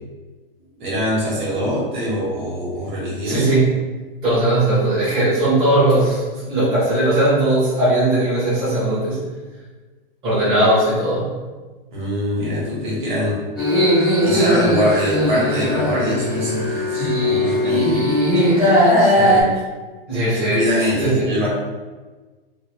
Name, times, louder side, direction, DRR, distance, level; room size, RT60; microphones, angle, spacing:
voice 1, 0.8-3.4 11.9-13.4 13.8-18.0 18.3-18.9 20.3-21.5, equal, 55° right, -5 dB, 1.3 m, -23 dB
voice 2, 3.2-3.7 4.2-9.2 10.2-11.3 19.0-19.4 20.1-20.6 21.0-21.3, right 1 dB, 20° right, -10 dB, 1.0 m, -18 dB
sound 1, 13.6-19.4, equal, 5° right, 0.6 m, -18 dB
2.7 x 2.7 x 3.0 m, 1.3 s
hypercardioid pair, 160°, 30 cm